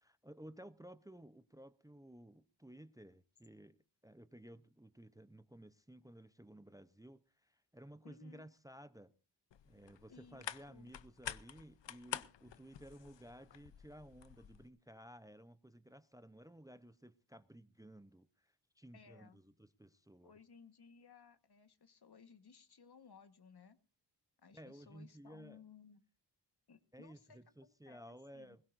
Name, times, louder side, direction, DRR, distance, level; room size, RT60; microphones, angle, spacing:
voice 1, 0.0-3.8 4.0-9.1 9.6-20.3 24.5-25.6 26.9-28.6, right 1 dB, 10° right, 0.7 m, -56 dB
voice 2, 8.0-8.5 10.1-10.9 18.9-19.4 20.2-23.8 24.4-26.0 26.7-28.6, left 6 dB, 65° left, 1.4 m, -61 dB
sound 1, 9.5-14.7, left 10 dB, 85° left, 0.7 m, -49 dB
20.5 x 17.0 x 2.6 m
wide cardioid pair, 70°, 42 cm